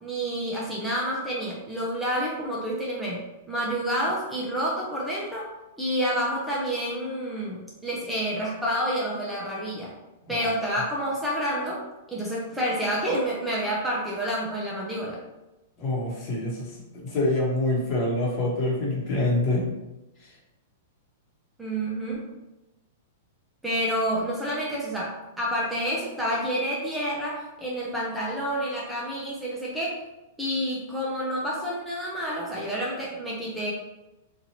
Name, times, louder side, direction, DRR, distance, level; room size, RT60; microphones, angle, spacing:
voice 1, 0.0-3.2 3.5-5.5 5.8-9.9 10.3-15.2 21.6-22.3 23.6-30.0 30.4-33.7, equal, 5° right, -5 dB, 0.6 m, -29 dB
voice 2, 15.8-19.7, left 2 dB, 40° left, -4 dB, 1.1 m, -26 dB
2.8 x 2.5 x 2.9 m, 1.0 s
hypercardioid pair, 135°, 0 cm